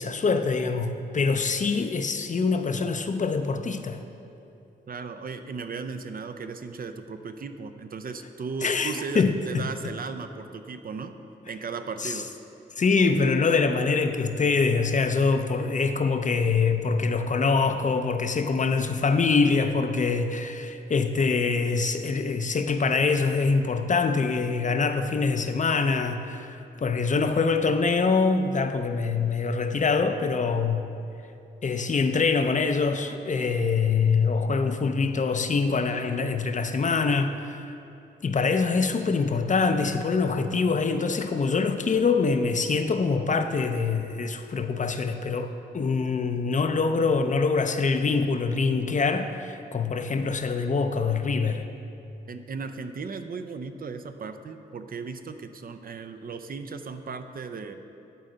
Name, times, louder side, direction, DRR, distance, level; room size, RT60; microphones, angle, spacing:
voice 1, 0.0-4.0 8.6-9.6 12.0-12.1 12.8-30.9 31.6-37.7 38.2-51.7, left 4 dB, 40° left, 7 dB, 0.5 m, -24 dB
voice 2, 4.9-11.1 11.5-12.3 52.3-57.7, right 4 dB, 45° right, 8 dB, 0.5 m, -36 dB
11.0 x 4.1 x 3.9 m, 2.8 s
supercardioid pair, 45°, 20 cm